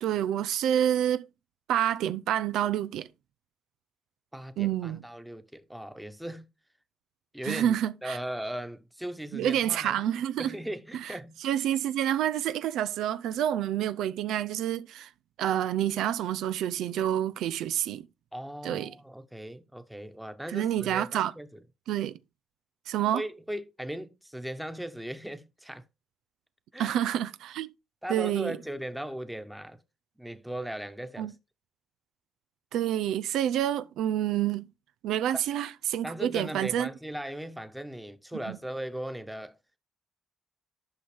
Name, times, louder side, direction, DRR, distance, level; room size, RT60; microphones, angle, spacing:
voice 1, 0.0-1.3 1.7-3.1 4.6-5.0 7.4-8.2 9.3-10.5 10.9-11.2 11.4-15.1 15.4-18.1 18.6-18.9 20.5-21.3 21.9-22.2 22.9-23.2 26.8-27.7 28.1-28.5 31.2-31.3 32.7-34.7 35.0-36.9 38.5-38.6, right 11 dB, 85° right, 0.4 m, -28 dB
voice 2, 4.3-6.5 7.3-10.0 10.4-11.4 18.3-21.6 23.1-25.8 26.7-27.0 28.0-29.8 30.2-31.3 36.0-39.6, right 1 dB, 5° right, 1.2 m, -38 dB
11.5 x 5.6 x 3.4 m
cardioid pair, 90°, 0 cm